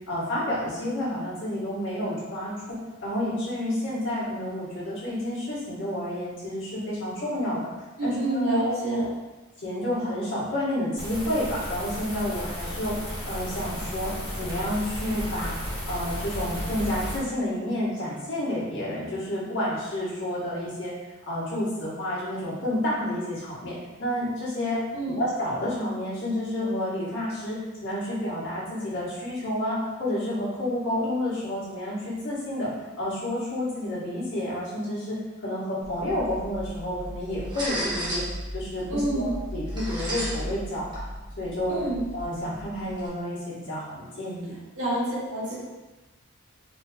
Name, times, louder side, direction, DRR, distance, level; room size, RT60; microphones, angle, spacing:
voice 1, 0.1-7.7 8.0-8.8 9.6-13.0 13.3-14.1 14.4-15.5 15.9-20.9 21.3-24.8 25.2-32.7 33.0-38.2 38.5-41.0 41.4-41.8 42.1-44.5, left 1 dB, 60° left, -8 dB, 1.3 m, -30 dB
voice 2, 8.0-9.1 24.9-25.2 38.9-39.3 41.7-42.0 44.7-45.5, right 1 dB, 80° right, -8 dB, 1.5 m, -27 dB
sound 1, 11.0-17.2, equal, 25° left, 1.3 m, -34 dB
sound 2, 35.8-43.1, equal, 20° right, 0.8 m, -35 dB
4.1 x 3.0 x 2.3 m, 1.1 s
head